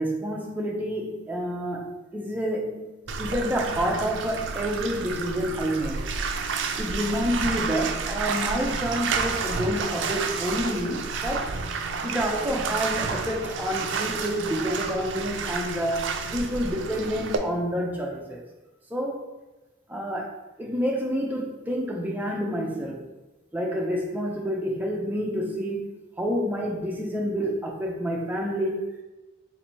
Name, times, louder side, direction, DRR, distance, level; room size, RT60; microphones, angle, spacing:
voice 1, 0.0-6.0 6.8-11.6 12.0-18.4 18.9-19.2 19.9-23.0 23.5-25.9 26.2-28.9, equal, 10° right, -1 dB, 0.5 m, -28 dB
Bathtub (filling or washing), 3.1-17.4, right 5 dB, 75° right, 0.4 m, -30 dB
2.9 x 2.6 x 4.3 m, 1.1 s
head